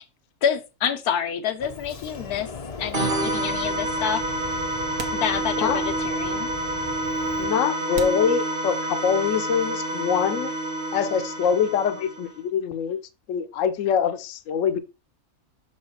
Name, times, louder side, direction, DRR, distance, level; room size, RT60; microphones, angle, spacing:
voice 1, 0.4-2.5 2.8-4.2 5.1-6.7, left 8 dB, 85° left, 1.3 m, -28 dB
Sliding door, 1.6-7.5, left 5 dB, 40° left, 0.5 m, -39 dB
sound 1, 2.9-12.4, right 1 dB, 35° right, 1.2 m, -28 dB
sound 2, 5.0-5.9 6.2-6.3 7.0-7.1 7.9-9.2, right 5 dB, 90° right, 1.5 m, -39 dB
voice 2, 7.4-10.5 10.9-13.0 13.3-14.8, left 7 dB, 65° left, 1.0 m, -24 dB
6.3 x 4.8 x 4.3 m
omnidirectional pair, 1.6 m